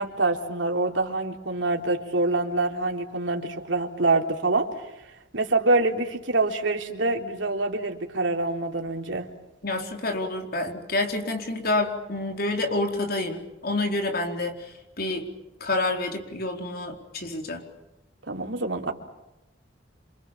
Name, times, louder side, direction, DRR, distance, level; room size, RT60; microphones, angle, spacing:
voice 1, 0.0-4.7 5.3-9.3 18.3-18.9, right 2 dB, 75° right, 3 dB, 3.6 m, -25 dB
voice 2, 9.6-14.7 15.0-15.3 15.6-17.6, left 2 dB, 55° left, 4 dB, 4.4 m, -28 dB
28.0 x 27.0 x 7.5 m, 0.94 s
head